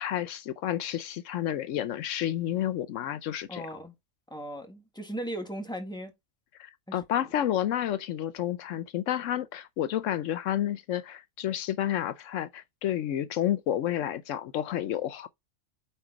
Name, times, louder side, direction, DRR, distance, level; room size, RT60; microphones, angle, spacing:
voice 1, 0.0-3.7 6.6-15.3, left 11 dB, 80° left, 1.0 m, -30 dB
voice 2, 3.5-3.9 4.3-6.1 6.9-7.3, right 1 dB, 5° left, 1.7 m, -38 dB
9.0 x 4.1 x 3.9 m
omnidirectional pair, 1.3 m